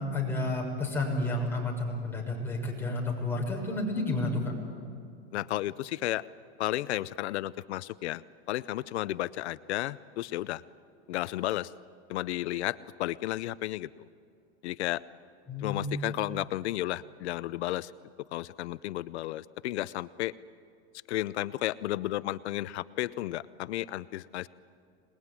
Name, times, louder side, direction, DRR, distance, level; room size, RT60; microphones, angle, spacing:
voice 1, 0.0-4.5 15.5-16.1, left 2 dB, 5° left, -2 dB, 6.3 m, -31 dB
voice 2, 5.3-6.3 6.6-8.2 8.5-10.6 11.1-11.7 12.1-14.1 14.6-15.0 15.6-17.9 18.3-20.3 21.1-24.5, left 15 dB, 85° left, 17 dB, 0.7 m, -33 dB
26.5 x 20.5 x 9.7 m, 2.5 s
supercardioid pair, 135°, 33 cm